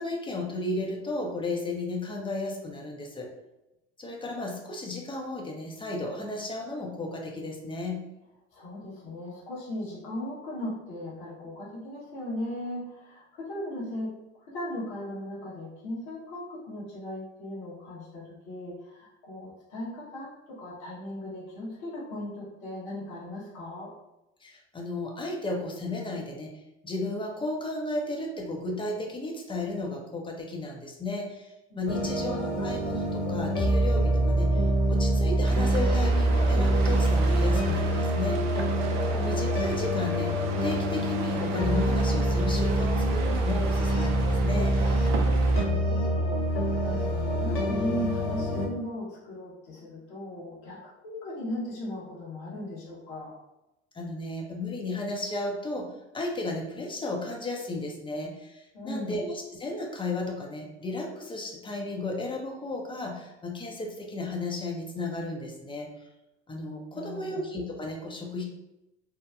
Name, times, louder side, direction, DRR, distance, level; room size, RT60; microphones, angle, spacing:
voice 1, 0.0-3.3 4.0-8.0 24.4-26.5 26.8-38.4 39.0-40.3 40.6-44.8 53.9-55.9 56.1-65.9 66.5-68.5, left 2 dB, 15° left, 0 dB, 0.6 m, -34 dB
voice 2, 8.5-14.2 14.5-23.9 31.7-32.4 39.0-39.4 45.5-53.4 58.7-59.2 66.9-67.4, left 1 dB, 70° left, -5 dB, 1.1 m, -37 dB
sound 1, 31.9-48.7, right 1 dB, 35° left, 0.9 m, -25 dB
sound 2, 35.4-45.6, right 5 dB, 50° right, 0.5 m, -37 dB
3.0 x 2.1 x 2.4 m, 0.93 s
hypercardioid pair, 70°, 35 cm